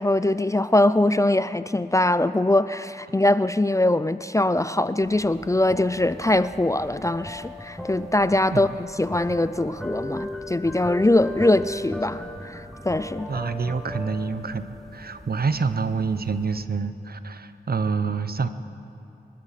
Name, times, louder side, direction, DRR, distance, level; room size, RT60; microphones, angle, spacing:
voice 1, 0.0-13.3, left 1 dB, 20° left, 14 dB, 0.4 m, -22 dB
sound 1, 5.0-16.6, left 1 dB, ahead, 1.9 m, -37 dB
voice 2, 13.3-18.5, right 5 dB, 60° right, 11 dB, 0.8 m, -27 dB
26.0 x 13.0 x 4.2 m, 2.7 s
cardioid pair, 45°, 18 cm